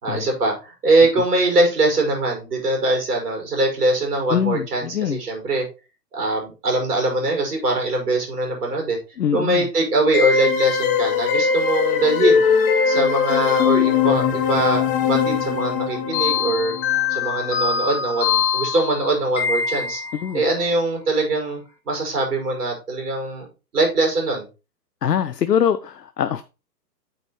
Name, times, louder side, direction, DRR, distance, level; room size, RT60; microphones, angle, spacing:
voice 1, 0.0-5.7 6.1-9.0 9.3-12.5 12.9-16.7 17.1-20.0 20.3-21.6 21.9-23.5 23.7-24.5, right 2 dB, 65° right, 5.4 m, -22 dB
voice 2, 4.3-5.2 9.2-9.6 20.2-20.4 25.0-26.4, left 9 dB, 70° left, 0.7 m, -23 dB
sound 1, 10.1-20.3, left 6 dB, 15° left, 0.8 m, -21 dB
8.9 x 7.2 x 3.1 m
figure-of-eight pair, 120°, 49 cm